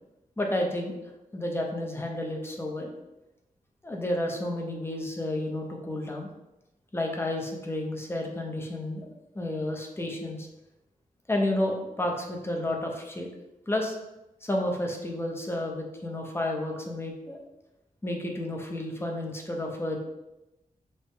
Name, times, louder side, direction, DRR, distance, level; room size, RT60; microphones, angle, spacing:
voice 1, 0.4-1.0 1.3-2.9 3.8-6.3 6.9-9.1 9.3-10.5 11.3-13.3 13.7-14.0 14.4-17.4 18.0-20.0, left 1 dB, 15° left, 1 dB, 0.7 m, -31 dB
6.3 x 2.2 x 3.5 m, 0.94 s
wide cardioid pair, 140°, 15 cm